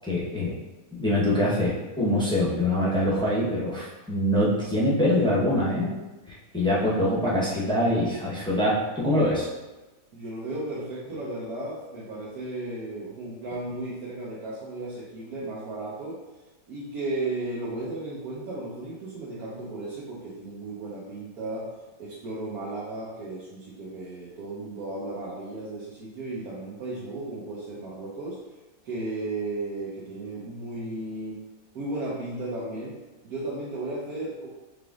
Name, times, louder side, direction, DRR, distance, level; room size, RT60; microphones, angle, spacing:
voice 1, 0.1-0.5 1.0-6.0 6.5-9.5, left 1 dB, 5° left, -7 dB, 0.6 m, -24 dB
voice 2, 10.1-16.2 16.7-21.7 22.0-28.4 28.8-31.4 31.7-32.9 33.2-34.5, right 2 dB, 85° right, -6 dB, 1.3 m, -34 dB
4.9 x 3.3 x 2.4 m, 1.1 s
omnidirectional pair, 1.6 m